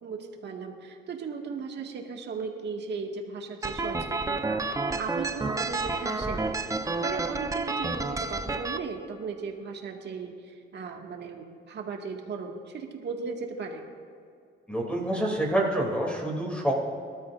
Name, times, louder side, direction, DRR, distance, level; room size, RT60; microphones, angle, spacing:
voice 1, 0.0-6.4 7.0-13.8, right 5 dB, 60° right, 1 dB, 2.0 m, -37 dB
sound 1, 3.6-8.8, right 3 dB, 15° right, 0.8 m, -30 dB
voice 2, 14.7-16.7, right 1 dB, 5° left, -2 dB, 2.9 m, -27 dB
23.0 x 12.5 x 2.6 m, 2.4 s
cardioid pair, 90°, 20 cm